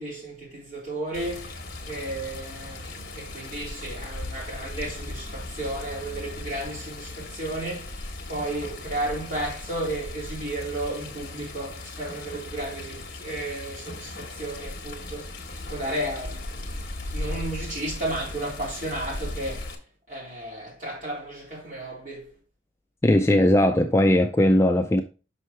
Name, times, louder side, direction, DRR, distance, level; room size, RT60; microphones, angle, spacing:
voice 1, 0.0-1.5 1.8-15.4 15.7-16.7 17.1-19.7 20.1-22.3, right 1 dB, 40° right, 3.6 m, -33 dB
Water, 1.1-19.8, left 2 dB, 50° left, 1.2 m, -37 dB
voice 2, 23.0-25.0, left 1 dB, 15° left, 0.3 m, -19 dB
6.1 x 5.5 x 3.2 m
head